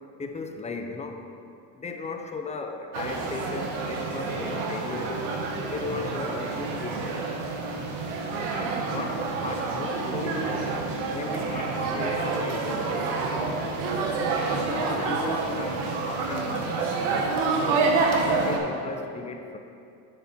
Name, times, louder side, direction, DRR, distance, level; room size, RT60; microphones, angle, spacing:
voice 1, 0.2-1.2 1.8-5.2 5.7-7.2 8.5-10.7 11.1-13.1 14.5-16.8 17.6-18.0 18.2-19.6, left 4 dB, 20° left, 4 dB, 0.7 m, -36 dB
sound 1, 2.9-18.6, right 3 dB, 90° right, 1.1 m, -28 dB
6.8 x 6.7 x 4.3 m, 2.5 s
supercardioid pair, 110°, 36 cm